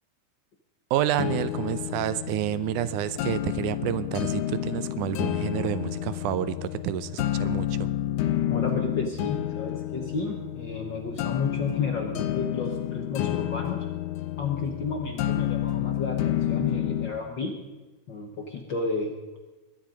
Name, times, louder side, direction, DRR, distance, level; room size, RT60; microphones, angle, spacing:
voice 1, 0.9-7.9, right 12 dB, 80° right, 14 dB, 2.1 m, -29 dB
sound 1, 1.2-17.2, left 12 dB, 80° left, 2.1 m, -30 dB
voice 2, 8.5-13.8 14.4-17.5 18.1-19.1, left 4 dB, 55° left, 3 dB, 1.4 m, -32 dB
20.5 x 10.5 x 5.2 m, 1.2 s
omnidirectional pair, 3.6 m